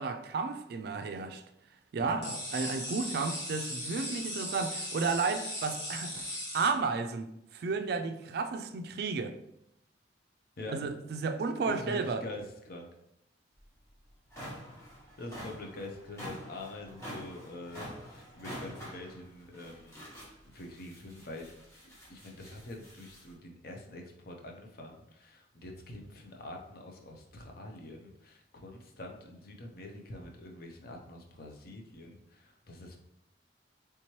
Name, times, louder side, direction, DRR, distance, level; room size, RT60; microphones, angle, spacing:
voice 1, 0.0-1.4 1.9-9.4 10.7-12.2, right 4 dB, 60° right, 0.3 m, -33 dB
voice 2, 2.0-2.4 10.6-10.8 11.6-12.9 15.2-20.0 20.4-21.5 22.1-33.0, left 1 dB, 55° left, 0.6 m, -45 dB
sound 1, 2.2-6.7, left 1 dB, 75° left, 1.5 m, -38 dB
sound 2, 13.6-13.7 14.1-23.3, equal, 15° left, 1.0 m, -47 dB
3.4 x 2.9 x 3.0 m
head